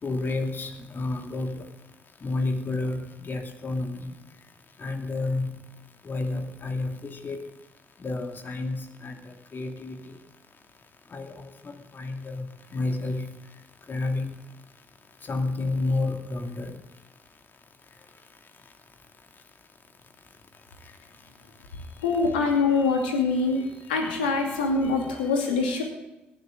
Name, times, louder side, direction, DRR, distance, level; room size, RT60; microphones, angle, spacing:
voice 1, 0.0-1.5 2.2-4.1 4.8-5.5 6.0-6.9 7.2-7.4 8.0-9.1 9.5-10.0 11.1-11.3 11.6-13.2 13.9-14.3 15.3-16.7, left 2 dB, 40° left, 4 dB, 2.7 m, -30 dB
voice 2, 22.0-25.8, left 4 dB, 90° left, 2 dB, 2.5 m, -24 dB
18.0 x 11.5 x 3.8 m, 0.98 s
hypercardioid pair, 50°, 5 cm